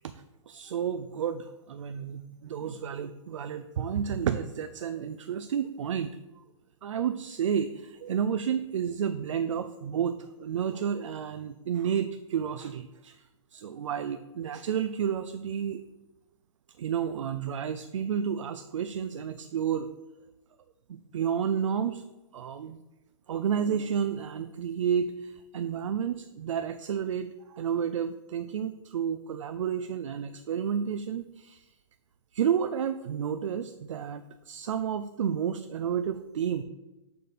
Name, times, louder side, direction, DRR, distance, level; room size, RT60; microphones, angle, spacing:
voice 1, 0.1-6.1 6.8-13.2 13.5-15.8 16.8-19.9 21.1-22.0 22.3-22.8 23.3-31.7 32.3-36.6, right 8 dB, 70° right, 10 dB, 0.4 m, -31 dB
6.6 x 4.2 x 5.0 m, 1.0 s
hypercardioid pair, 175°, 16 cm